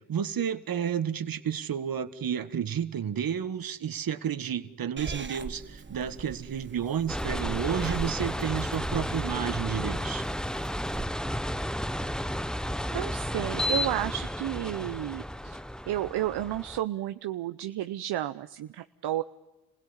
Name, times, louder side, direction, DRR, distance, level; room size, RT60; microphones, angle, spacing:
voice 1, 0.1-10.2, right 8 dB, 60° right, 11 dB, 1.7 m, -31 dB
Purr / Meow, 5.0-11.0, right 4 dB, 30° right, 1.3 m, -41 dB
sound 1, 7.1-16.8, equal, ahead, 0.8 m, -32 dB
voice 2, 12.9-15.6 15.9-19.2, right 13 dB, 75° right, 10 dB, 0.8 m, -32 dB
27.5 x 17.0 x 9.8 m, 1.0 s
cardioid pair, 70°, 40 cm